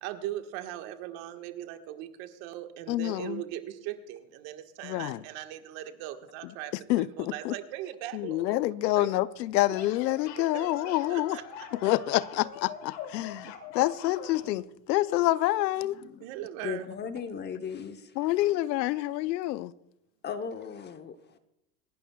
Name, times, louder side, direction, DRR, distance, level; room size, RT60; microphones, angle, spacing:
voice 1, 0.0-8.5 8.9-9.1 10.5-11.4 13.2-13.3 16.2-16.8, right 13 dB, 55° right, 1.5 m, -39 dB
voice 2, 2.9-3.4 4.8-5.2 6.9-7.5 8.1-11.4 11.8-16.0 18.2-19.7, left 16 dB, 80° left, 0.6 m, -27 dB
sound 1, 9.5-14.5, left 8 dB, 50° left, 1.7 m, -43 dB
voice 3, 15.9-16.2 16.6-18.1 20.2-21.4, left 6 dB, 20° left, 0.8 m, -37 dB
26.5 x 12.0 x 2.3 m
supercardioid pair, 125°, 50 cm